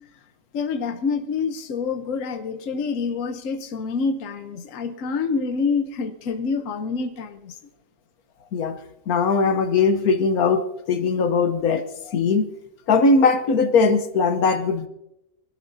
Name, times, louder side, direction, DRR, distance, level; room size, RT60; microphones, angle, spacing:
voice 1, 0.5-7.6, left 5 dB, 65° left, 7 dB, 1.3 m, -27 dB
voice 2, 9.1-12.5 12.9-14.9, left 4 dB, 80° left, 8 dB, 1.5 m, -20 dB
23.0 x 12.0 x 2.7 m, 0.84 s
omnidirectional pair, 1.5 m